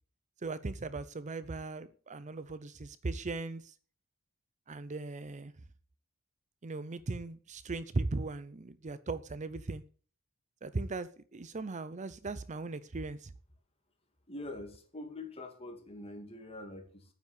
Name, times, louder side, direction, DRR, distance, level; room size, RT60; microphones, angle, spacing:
voice 1, 0.4-3.7 4.7-5.5 6.6-9.8 10.6-13.3, right 3 dB, 35° right, 15 dB, 0.6 m, -38 dB
voice 2, 14.3-17.1, left 2 dB, 30° left, 4 dB, 2.6 m, -44 dB
9.5 x 8.2 x 8.3 m, 0.43 s
head